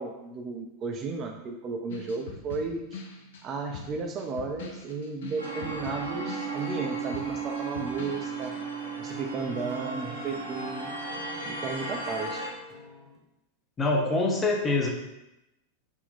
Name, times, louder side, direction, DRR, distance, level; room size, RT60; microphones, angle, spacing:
voice 1, 0.0-2.9 3.4-8.6 9.0-10.9 11.4-12.5, right 4 dB, 30° right, 3 dB, 0.5 m, -34 dB
sound 1, 1.9-8.5, left 4 dB, 60° left, 0.5 m, -43 dB
sound 2, 5.4-12.5, right 4 dB, 80° right, 0.9 m, -35 dB
sound 3, 8.1-13.2, left 1 dB, 15° right, 1.0 m, -48 dB
voice 2, 13.8-14.9, left 2 dB, 20° left, 1 dB, 0.7 m, -24 dB
3.6 x 2.3 x 3.9 m, 0.91 s
figure-of-eight pair, 90°, 0 cm